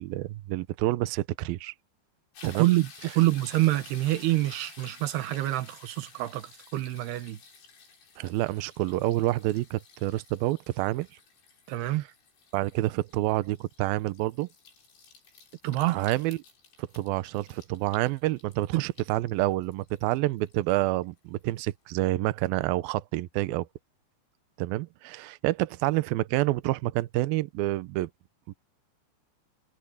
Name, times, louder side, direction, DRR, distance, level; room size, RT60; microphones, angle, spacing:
voice 1, 0.0-1.7 2.4-2.7 8.2-11.1 11.8-11.9 12.5-14.5 15.9-16.4 16.8-23.7 24.6-28.1 28.5-28.6, right 17 dB, 90° right, 2.1 m, -28 dB
sound 1, 2.4-21.4 21.9-22.0, left 5 dB, 75° left, 8.9 m, -53 dB
voice 2, 2.4-2.9 3.1-7.4 11.7-12.0 15.6-16.0 18.7-18.8, right 16 dB, 70° right, 3.0 m, -26 dB
omnidirectional pair, 5.3 m